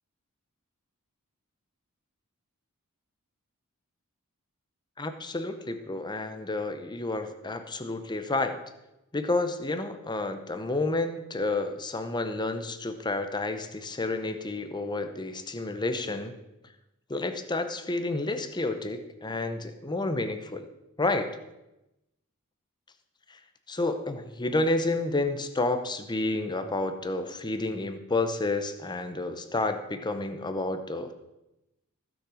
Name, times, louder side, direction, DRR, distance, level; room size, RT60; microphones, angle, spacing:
voice 1, 5.0-8.6 9.1-16.3 17.1-20.7 21.0-21.4 23.3-23.4 23.7-31.1, left 2 dB, 20° left, 8 dB, 0.8 m, -30 dB
15.5 x 6.5 x 4.9 m, 0.92 s
head